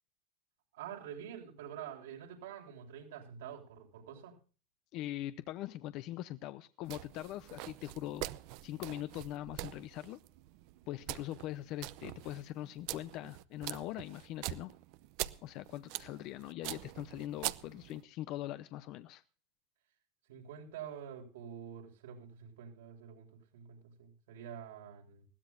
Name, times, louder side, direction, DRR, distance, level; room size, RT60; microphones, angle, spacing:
voice 1, 0.7-4.3 20.3-25.3, right 9 dB, 90° right, 1 dB, 7.0 m, -47 dB
voice 2, 4.9-8.3 8.6-10.2 10.9-14.7 15.4-19.2, left 14 dB, 45° left, 13 dB, 0.8 m, -42 dB
sound 1, 6.8-18.0, right 17 dB, 50° right, 0.7 m, -44 dB
20.5 x 16.0 x 2.6 m, 0.36 s
supercardioid pair, 155°, 0 cm